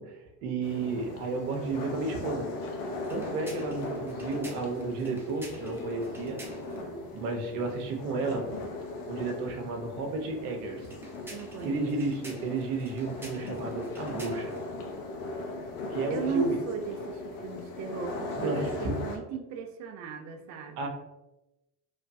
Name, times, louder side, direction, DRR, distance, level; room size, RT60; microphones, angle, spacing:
voice 1, 0.0-2.5 3.1-6.4 7.1-8.5 9.1-10.9 11.6-14.5 15.9-16.6 18.4-19.0 20.8-20.9, right 3 dB, 85° right, 2 dB, 0.7 m, -32 dB
sound 1, 0.6-19.2, left 2 dB, 85° left, 0.6 m, -38 dB
sound 2, 3.0-6.9 10.8-14.7, right 1 dB, 5° right, 0.7 m, -48 dB
voice 2, 6.7-7.1 11.3-11.9 16.1-20.9, right 6 dB, 45° right, 5 dB, 0.4 m, -37 dB
3.1 x 2.2 x 2.6 m, 0.95 s
hypercardioid pair, 80°, 44 cm